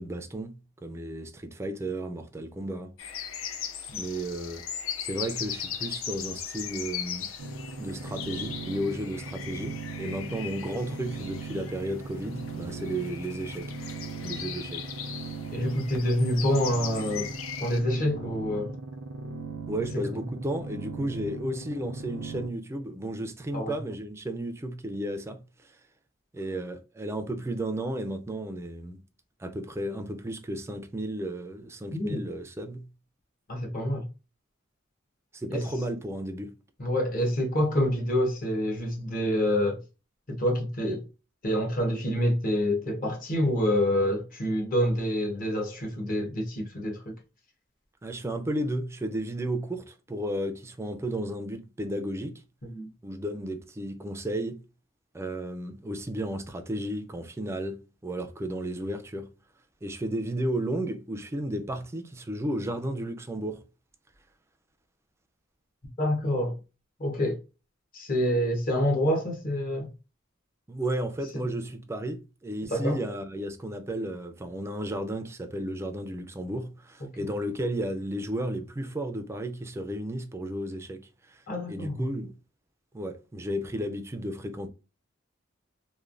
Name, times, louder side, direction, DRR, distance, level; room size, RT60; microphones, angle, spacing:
voice 1, 0.0-2.9 4.0-4.7 5.0-7.3 7.8-13.7 14.2-14.9 19.7-25.8 26.3-29.0 29.4-32.9 35.3-36.5 48.0-52.4 53.0-54.6 55.1-59.3 59.8-63.6 70.7-81.4 81.7-82.3 82.9-84.7, right 1 dB, 15° right, 0.3 m, -33 dB
sound 1, 3.0-17.8, left 8 dB, 90° left, 0.5 m, -39 dB
sound 2, 7.4-22.5, right 3 dB, 85° right, 0.5 m, -38 dB
voice 2, 15.5-17.3 17.6-18.8 19.9-20.2 23.5-23.8 31.9-32.2 33.5-34.1 35.5-35.7 36.8-39.8 40.3-41.1 41.4-47.1 52.7-52.9 66.0-66.6 67.0-67.4 67.9-69.9 72.7-73.0 77.1-77.3 81.5-82.0, equal, 45° left, 0.8 m, -27 dB
3.1 x 2.1 x 2.4 m
head